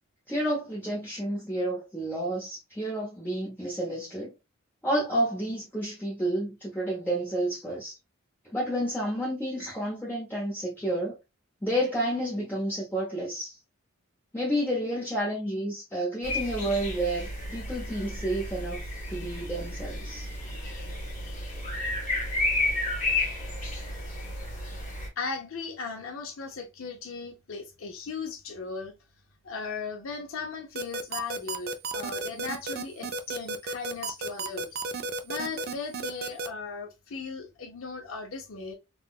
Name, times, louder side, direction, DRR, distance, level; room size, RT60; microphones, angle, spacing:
voice 1, 0.3-4.3 4.8-8.0 8.5-11.2 11.6-13.6 14.3-20.3, right 1 dB, 10° left, 0.6 m, -30 dB
sound 1, 16.2-25.1, left 2 dB, 35° left, 1.1 m, -32 dB
voice 2, 25.2-28.9 29.4-34.7 35.2-38.7, left 4 dB, 70° left, 0.6 m, -37 dB
sound 2, 30.8-36.5, right 3 dB, 45° right, 0.3 m, -32 dB
3.7 x 2.2 x 2.3 m
head